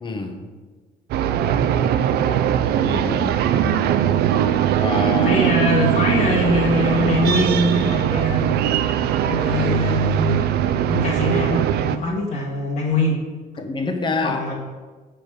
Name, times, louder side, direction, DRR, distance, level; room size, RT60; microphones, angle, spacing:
voice 1, 0.0-0.4 2.8-3.3 4.8-5.4 13.6-14.5, left 4 dB, 30° left, 5 dB, 1.1 m, -26 dB
sound 1, 1.1-12.0, right 9 dB, 70° right, 0.5 m, -20 dB
voice 2, 5.2-8.6 9.2-10.4 10.9-13.2 14.2-14.5, left 2 dB, 50° left, -5 dB, 1.5 m, -22 dB
6.8 x 5.1 x 6.2 m, 1.4 s
cardioid pair, 110°, 17 cm